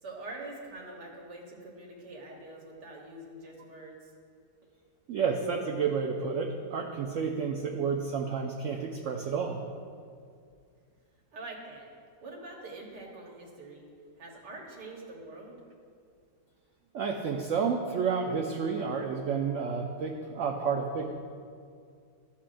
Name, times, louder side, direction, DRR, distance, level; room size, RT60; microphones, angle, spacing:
voice 1, 0.0-4.1 11.3-11.9 12.2-13.9 14.2-15.6, right 2 dB, 85° right, -2 dB, 1.9 m, -44 dB
voice 2, 5.1-9.6 16.9-21.1, right 5 dB, 70° right, 3 dB, 0.7 m, -30 dB
12.5 x 7.0 x 2.5 m, 2.3 s
omnidirectional pair, 1.8 m